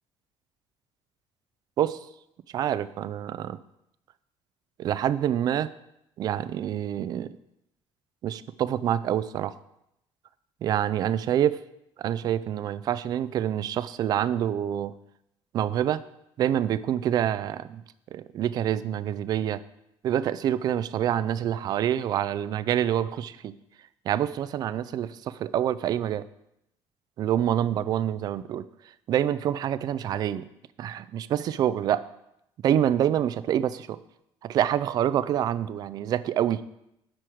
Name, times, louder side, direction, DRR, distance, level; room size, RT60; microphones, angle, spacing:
voice 1, 2.5-3.6 4.8-5.7 6.2-7.3 8.2-9.5 10.6-11.6 12.0-14.9 15.5-16.0 16.4-17.8 18.1-19.6 20.0-23.5 24.1-26.3 27.2-28.6 29.1-30.5 30.8-32.0 32.6-34.0 34.4-36.6, right 10 dB, 40° right, 15 dB, 0.4 m, -26 dB
10.5 x 4.7 x 6.3 m, 0.81 s
cardioid pair, 175°, 10 cm